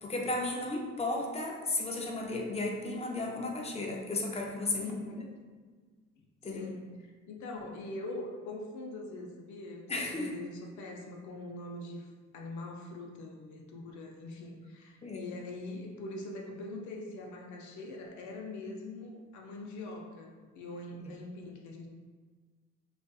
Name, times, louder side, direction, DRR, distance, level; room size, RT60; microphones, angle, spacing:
voice 1, 0.0-4.9 6.4-6.7 9.9-10.3 15.0-15.3, left 2 dB, 20° left, 0 dB, 0.4 m, -34 dB
voice 2, 4.8-5.3 6.5-6.9 7.3-12.1 12.3-21.9, left 2 dB, 70° left, 1 dB, 0.5 m, -43 dB
2.5 x 2.4 x 2.2 m, 1.5 s
cardioid pair, 90°, 30 cm